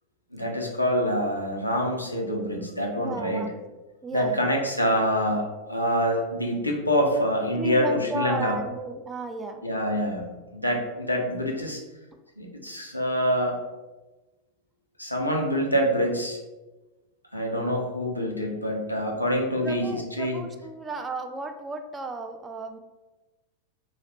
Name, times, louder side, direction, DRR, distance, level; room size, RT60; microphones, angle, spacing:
voice 1, 0.3-3.5 4.1-8.6 9.6-11.8 12.4-13.6 15.0-16.4 17.3-19.8 20.2-20.4, equal, 85° left, 0 dB, 0.6 m, -26 dB
voice 2, 3.0-3.6 4.0-4.5 7.6-9.7 19.6-22.8, right 3 dB, 15° right, 6 dB, 0.4 m, -34 dB
3.2 x 2.3 x 4.2 m, 1.1 s
figure-of-eight pair, 90°, 0 cm